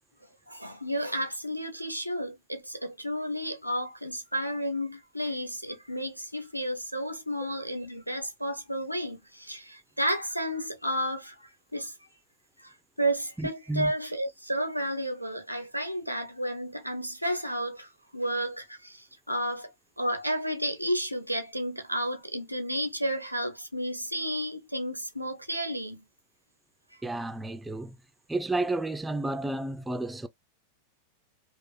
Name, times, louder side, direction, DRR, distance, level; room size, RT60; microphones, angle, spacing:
voice 1, 0.5-11.9 12.6-19.7 20.0-26.0, equal, 90° right, 0.7 m, -32 dB
voice 2, 13.4-13.9 27.0-28.0 28.3-30.3, right 2 dB, 10° right, 0.4 m, -31 dB
3.9 x 2.5 x 2.2 m
figure-of-eight pair, 90°, 0 cm